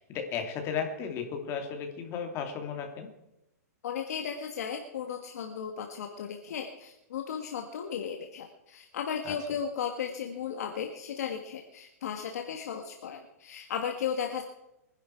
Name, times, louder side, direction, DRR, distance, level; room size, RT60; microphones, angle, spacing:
voice 1, 0.0-3.1 9.2-9.3, left 6 dB, 30° left, 4 dB, 2.8 m, -34 dB
voice 2, 3.8-14.4, left 7 dB, 70° left, 3 dB, 1.8 m, -35 dB
23.5 x 11.0 x 4.6 m, 0.88 s
hypercardioid pair, 145°, 9 cm